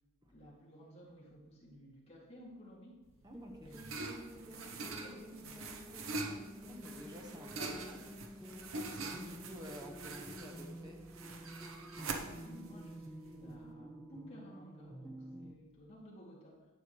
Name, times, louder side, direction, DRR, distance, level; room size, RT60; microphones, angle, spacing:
voice 1, 0.3-3.0 3.6-5.6 12.0-16.6, equal, 30° left, -6 dB, 2.6 m, -55 dB
sound 1, 3.1-13.7, right 3 dB, 65° right, 0.9 m, -44 dB
voice 2, 3.2-3.7 6.7-8.1 8.9-11.0, equal, 20° right, 1 dB, 1.3 m, -50 dB
sound 2, 3.3-15.6, equal, ahead, 0.4 m, -50 dB
11.5 x 8.0 x 3.3 m, 1.1 s
head